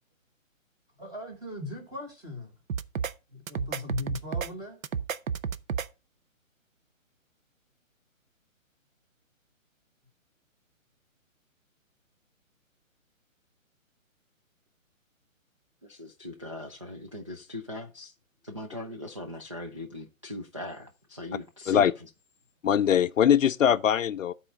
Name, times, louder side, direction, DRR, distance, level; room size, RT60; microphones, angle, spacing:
voice 1, 1.0-2.5 3.3-4.8, left 3 dB, 10° right, 1.8 m, -38 dB
sound 1, 2.7-3.1 3.5-4.5 4.8-5.9, right 7 dB, 75° right, 0.8 m, -31 dB
voice 2, 15.8-18.1 18.4-21.8, left 1 dB, 25° right, 0.4 m, -40 dB
voice 3, 22.6-24.3, left 9 dB, 70° left, 0.6 m, -22 dB
11.5 x 4.3 x 5.2 m
hypercardioid pair, 160°, 41 cm